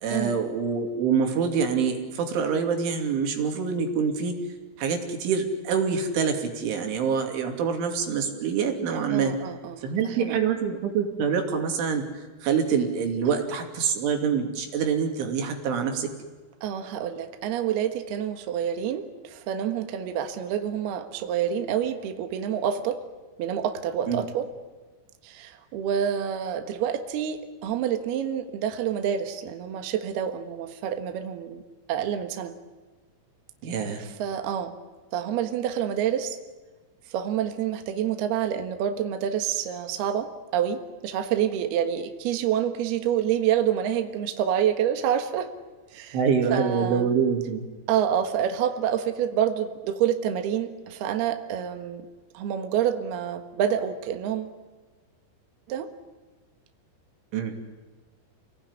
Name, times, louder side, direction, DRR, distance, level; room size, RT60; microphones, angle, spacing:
voice 1, 0.0-4.4 4.8-9.3 9.8-12.0 12.4-16.1 24.1-24.3 33.6-34.0 46.1-47.6 57.3-57.5, right 6 dB, 90° right, 4 dB, 5.2 m, -25 dB
voice 2, 9.1-10.4 16.6-23.0 23.4-24.5 25.2-31.6 31.9-32.6 34.0-34.7 35.1-36.4 37.1-45.5 45.9-46.2 46.5-47.1 47.9-52.0 52.3-54.5 55.7-55.9, right 9 dB, 65° right, 7 dB, 3.2 m, -27 dB
29.5 x 18.0 x 9.7 m, 1.3 s
omnidirectional pair, 5.3 m